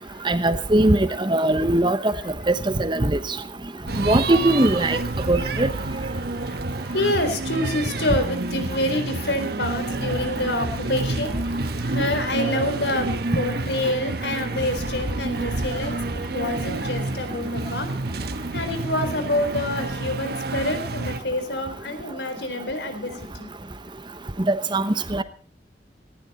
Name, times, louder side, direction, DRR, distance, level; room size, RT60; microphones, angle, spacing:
voice 1, 0.2-2.1 2.5-2.6 2.8-3.2 4.1-5.0 5.3-5.7 24.5-25.2, right 1 dB, 25° right, 12 dB, 1.0 m, -20 dB
sound 1, 3.9-21.2, right 2 dB, 60° right, 1.4 m, -29 dB
voice 2, 6.2-11.3 11.9-17.9 18.5-23.5, left 1 dB, 70° left, 9 dB, 4.0 m, -27 dB
18.5 x 15.5 x 4.3 m, 0.40 s
head